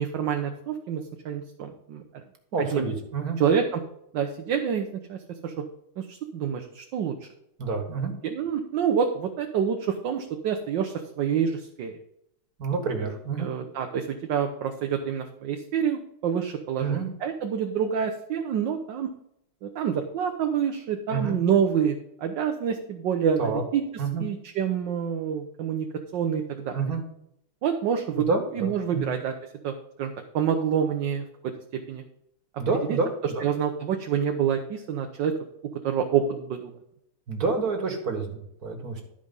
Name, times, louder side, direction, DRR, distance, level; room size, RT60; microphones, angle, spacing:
voice 1, 0.0-2.0 2.6-2.9 3.4-3.8 4.1-5.5 6.0-7.3 8.2-11.9 13.0-13.1 13.4-19.1 19.6-23.8 24.2-25.9 26.1-26.8 27.6-28.3 28.5-29.3 29.6-31.2 31.9-32.0 32.9-33.0 33.4-35.3 35.8-36.7, right 8 dB, 65° right, 4 dB, 1.4 m, -27 dB
voice 2, 2.5-3.4 7.6-8.1 12.6-13.5 16.8-17.1 21.1-21.4 23.4-23.6 24.0-24.2 26.7-27.0 28.1-29.1 32.6-33.5 37.3-39.0, right 4 dB, 45° right, 3 dB, 2.0 m, -28 dB
12.0 x 5.1 x 5.3 m, 0.77 s
omnidirectional pair, 2.4 m